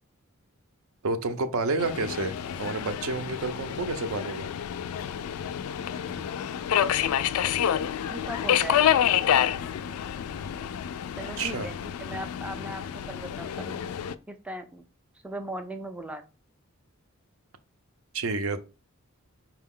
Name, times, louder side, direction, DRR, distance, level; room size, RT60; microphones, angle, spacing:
voice 1, 1.0-4.5 11.4-11.7 18.1-18.6, right 3 dB, 70° right, 0.5 m, -30 dB
Subway metro underground, 1.8-14.2, left 10 dB, 85° left, 0.3 m, -28 dB
voice 2, 8.1-9.0 11.2-13.8 14.3-14.8 15.2-16.2, right 1 dB, 5° right, 0.3 m, -38 dB
4.5 x 2.2 x 3.6 m
head